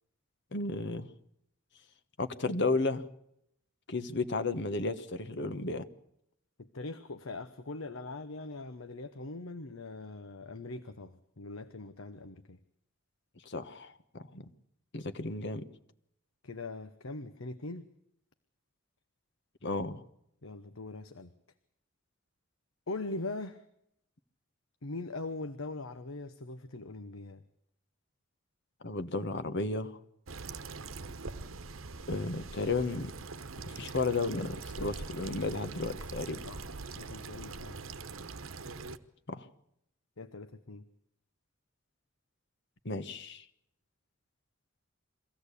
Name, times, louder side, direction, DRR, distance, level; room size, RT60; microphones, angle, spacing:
voice 1, 0.5-1.1 2.2-3.1 3.9-5.9 13.4-14.5 14.9-15.7 19.6-20.0 28.8-30.0 32.1-33.1 33.6-36.4 39.3-39.5 42.8-43.4, left 3 dB, 60° left, 11 dB, 1.2 m, -33 dB
voice 2, 6.6-12.6 16.4-17.9 20.4-21.3 22.9-23.6 24.8-27.4 36.4-36.7 36.9-37.8 40.2-40.8, left 2 dB, 85° left, 10 dB, 1.0 m, -41 dB
sound 1, 30.3-39.0, right 4 dB, 85° right, 1.0 m, -43 dB
23.0 x 16.0 x 8.4 m, 0.76 s
head